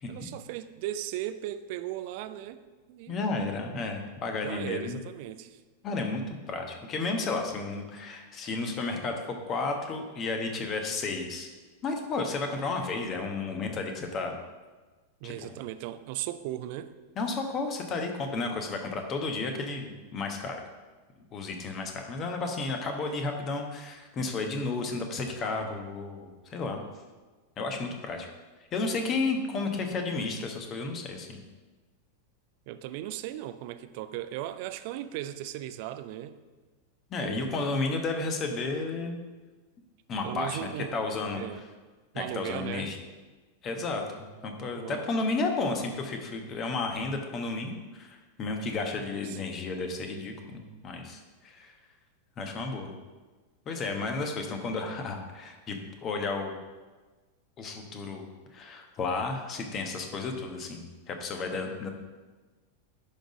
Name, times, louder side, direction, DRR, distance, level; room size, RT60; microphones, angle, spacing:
voice 1, 0.1-2.6 2.9-3.2 4.4-5.6 15.2-16.9 32.7-36.4 37.2-37.7 40.2-41.0 41.4-41.6 42.1-43.0 44.8-45.1 49.0-49.4, right 13 dB, 45° right, 11 dB, 0.5 m, -37 dB
voice 2, 3.1-5.0 5.8-11.5 11.8-14.4 15.2-15.3 17.2-20.6 21.3-26.8 27.6-28.3 28.7-31.4 37.1-39.2 40.1-41.4 42.1-43.0 43.6-44.0 44.4-51.7 52.4-53.0 53.6-56.5 57.6-61.9, left 3 dB, 30° left, 4 dB, 1.2 m, -32 dB
10.5 x 3.9 x 5.2 m, 1.3 s
figure-of-eight pair, 90°, 0 cm